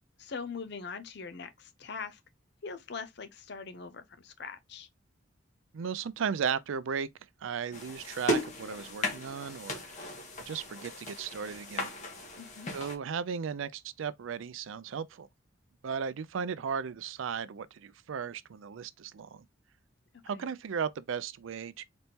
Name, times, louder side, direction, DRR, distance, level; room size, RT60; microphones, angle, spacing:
voice 1, 0.2-2.2 2.6-4.9 12.4-12.7 20.4-20.5, left 5 dB, 55° left, 0.6 m, -42 dB
voice 2, 5.7-7.1 7.4-10.1 10.5-11.9 12.7-15.3 15.8-19.4 20.2-21.8, right 6 dB, 75° right, 0.4 m, -35 dB
sound 1, 7.7-13.0, left 1 dB, 35° left, 1.2 m, -36 dB
4.1 x 3.5 x 2.8 m
head